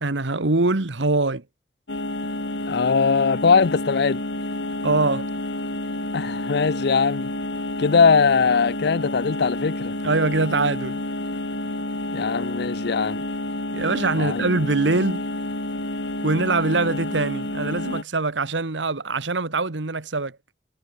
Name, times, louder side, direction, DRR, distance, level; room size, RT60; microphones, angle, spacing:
voice 1, 0.0-1.4 4.8-5.3 10.0-11.0 13.7-15.2 16.2-20.4, right 3 dB, 80° right, 1.4 m, -23 dB
sound 1, 1.9-18.0, left 1 dB, 80° left, 4.3 m, -29 dB
voice 2, 2.7-4.2 6.1-7.3 7.8-10.0 12.1-13.2 14.2-14.4, left 5 dB, 60° left, 0.5 m, -20 dB
head